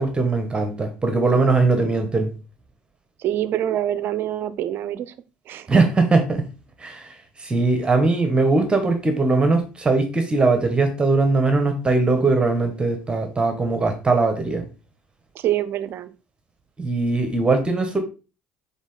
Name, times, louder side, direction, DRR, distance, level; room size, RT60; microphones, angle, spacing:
voice 1, 0.0-2.3 5.7-6.5 6.8-14.6 16.8-18.0, right 3 dB, 25° right, 5 dB, 1.5 m, -20 dB
voice 2, 3.2-5.1 5.5-5.7 15.3-16.1, right 12 dB, 60° right, 15 dB, 0.6 m, -25 dB
7.2 x 3.6 x 3.9 m, 0.32 s
hypercardioid pair, 65°, 4 cm